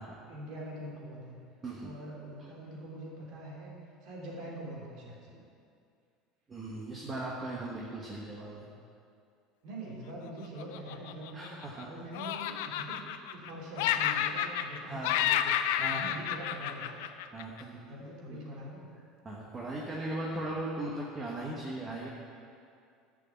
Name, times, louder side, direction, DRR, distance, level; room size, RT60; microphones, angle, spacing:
voice 1, 0.3-1.4 1.8-3.7 4.0-5.4 9.6-11.5 11.8-15.5 15.9-17.0 17.7-18.9, right 1 dB, 60° right, -3 dB, 3.1 m, -44 dB
voice 2, 6.5-8.7 11.3-11.9 14.8-15.2 15.8-16.2 17.3-17.9 18.3-18.4 19.2-22.1, right 2 dB, 20° right, -3 dB, 1.2 m, -38 dB
Laughter, 10.6-11.8 12.1-13.5 13.8-14.8 15.0-17.6, left 11 dB, 85° left, 0.5 m, -31 dB
11.0 x 6.3 x 7.0 m, 2.4 s
cardioid pair, 150°, 0 cm